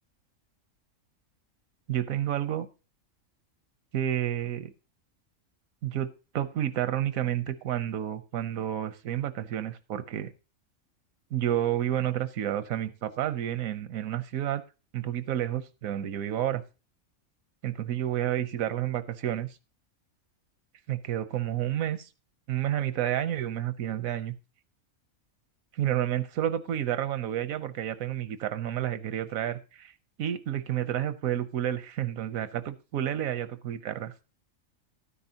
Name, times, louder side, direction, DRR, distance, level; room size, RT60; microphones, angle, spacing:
voice 1, 1.9-2.7 3.9-4.7 5.8-6.1 6.3-10.3 11.3-14.6 14.9-16.6 17.6-19.5 20.9-22.1 22.5-24.3 25.7-29.9 30.2-34.1, right 11 dB, 90° right, 13 dB, 1.2 m, -30 dB
12.5 x 9.8 x 2.8 m, 0.31 s
omnidirectional pair, 1.4 m